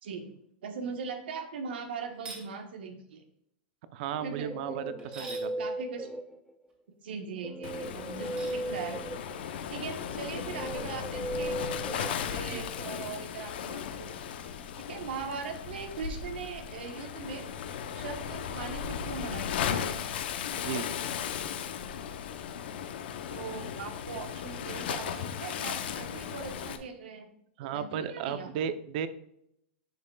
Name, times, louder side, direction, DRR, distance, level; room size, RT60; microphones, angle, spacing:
voice 1, 0.0-0.4 0.6-3.2 4.2-4.5 5.2-6.1 6.9-9.0 9.7-14.1 14.9-17.5 17.9-19.8 23.3-27.3 27.6-28.5, right 5 dB, 80° right, 5 dB, 1.1 m, -40 dB
sound 1, 2.1-2.5 5.0-5.5 8.2-8.6, right 3 dB, 20° right, 2.1 m, -44 dB
voice 2, 3.9-5.5 12.5-12.7 20.6-20.9 27.6-29.1, right 8 dB, 55° right, 12 dB, 0.6 m, -34 dB
Guitar, 4.1-6.7 7.4-12.8, right 1 dB, ahead, 0.4 m, -38 dB
Waves surf, 7.6-26.8, left 8 dB, 75° left, 0.7 m, -36 dB
10.5 x 5.4 x 2.3 m, 0.75 s
hypercardioid pair, 135°, 6 cm